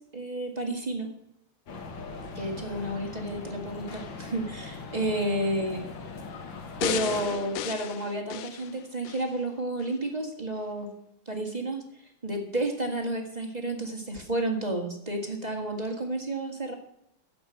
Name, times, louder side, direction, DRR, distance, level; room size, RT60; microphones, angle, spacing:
voice 1, 0.1-1.1 2.3-5.8 6.8-10.9 11.2-11.8 12.2-16.7, right 1 dB, 15° right, 2 dB, 1.6 m, -31 dB
sound 1, 1.7-7.3, left 4 dB, 50° left, 1.9 m, -40 dB
sound 2, 6.8-9.3 9.8-9.9, left 12 dB, 75° left, 1.7 m, -34 dB
11.0 x 8.2 x 8.9 m, 0.76 s
omnidirectional pair, 3.4 m